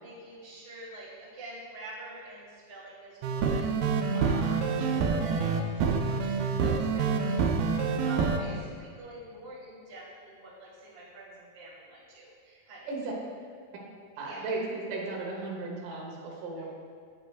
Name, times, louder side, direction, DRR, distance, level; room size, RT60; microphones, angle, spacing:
voice 1, 0.0-3.7 4.1-4.8 5.2-12.3 12.7-12.9 14.1-14.5 16.5-16.6, right 1 dB, 30° right, -7 dB, 1.0 m, -46 dB
sound 1, 3.2-8.4, right 5 dB, 85° right, 2.5 m, -27 dB
voice 2, 4.1-4.5 4.8-5.1 12.5-12.6 12.9-13.0 14.2-16.7, right 3 dB, 65° right, -3 dB, 2.5 m, -36 dB
8.6 x 7.9 x 2.4 m, 2.1 s
omnidirectional pair, 4.3 m